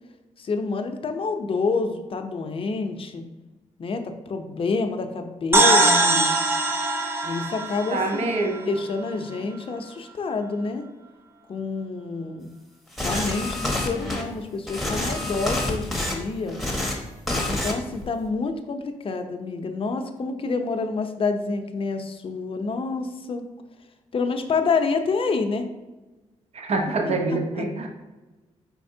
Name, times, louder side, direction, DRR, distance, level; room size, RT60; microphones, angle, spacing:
voice 1, 0.4-3.2 3.8-5.8 7.2-8.4 8.6-10.9 11.5-12.5 13.0-16.6 17.5-23.4 24.1-25.6 27.0-27.7, left 4 dB, 45° left, 6 dB, 0.6 m, -28 dB
sound 1, 5.5-9.2, right 2 dB, 20° right, 0.7 m, -22 dB
voice 2, 5.5-6.2 7.9-8.6 26.5-27.9, right 2 dB, 55° right, 3 dB, 0.8 m, -25 dB
sound 2, 13.0-14.2 14.7-16.1 16.5-16.9 17.3-17.7 18.0-18.3, left 1 dB, ahead, 1.0 m, -27 dB
4.6 x 4.3 x 2.7 m, 1.1 s
cardioid pair, 65°, 13 cm